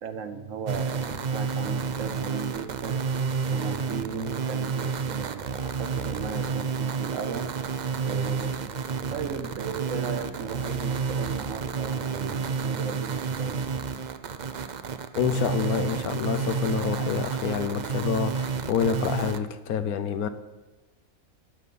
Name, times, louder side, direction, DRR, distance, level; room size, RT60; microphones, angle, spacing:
voice 1, 0.0-3.0 3.5-7.5 8.0-8.8 9.1-13.7, right 6 dB, 60° right, 1.2 m, -36 dB
sound 1, 0.7-19.4, right 5 dB, 85° right, 0.4 m, -30 dB
voice 2, 15.2-20.3, left 7 dB, 75° left, 1.2 m, -27 dB
12.0 x 5.5 x 8.4 m
omnidirectional pair, 1.6 m